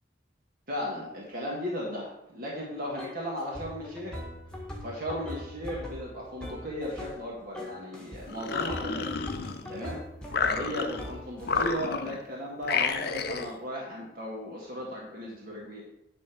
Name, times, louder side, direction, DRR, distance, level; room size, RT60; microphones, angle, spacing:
voice 1, 0.7-4.2 4.8-9.2 9.7-10.0 10.4-15.8, equal, 50° right, -4 dB, 1.7 m, -36 dB
sound 1, 3.0-3.2 3.5-7.3 7.5-8.3 8.7-11.9, left 1 dB, 5° left, 1.4 m, -42 dB
sound 2, 8.3-9.8 10.3-11.1 11.4-12.2 12.6-13.5, left 5 dB, 55° left, 0.6 m, -30 dB
10.0 x 3.7 x 6.1 m, 0.82 s
head